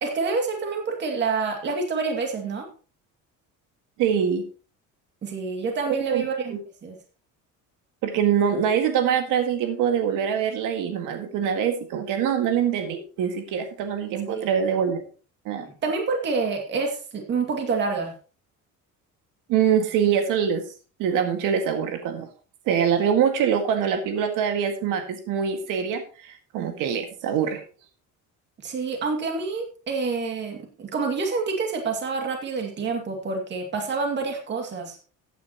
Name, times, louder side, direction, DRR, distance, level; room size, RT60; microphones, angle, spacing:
voice 1, 0.0-2.7 5.2-7.0 14.3-14.5 15.6-18.1 28.6-35.0, right 4 dB, 35° right, 3 dB, 2.4 m, -27 dB
voice 2, 4.0-4.5 6.1-6.6 8.0-15.0 15.5-15.7 19.5-20.6 21.0-22.3 22.7-27.6, right 8 dB, 90° right, 6 dB, 1.9 m, -24 dB
14.5 x 9.4 x 3.0 m, 0.37 s
cardioid pair, 180°, 31 cm